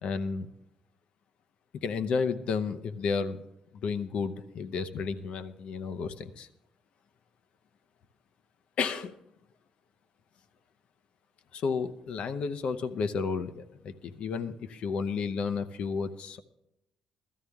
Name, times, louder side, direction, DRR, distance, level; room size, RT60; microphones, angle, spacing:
voice 1, 0.0-0.5 1.8-3.4 3.7-6.5 8.8-9.1 11.5-16.4, left 5 dB, 55° left, 11 dB, 0.7 m, -32 dB
16.0 x 13.0 x 3.5 m, 0.87 s
cardioid pair, 155°, 2 cm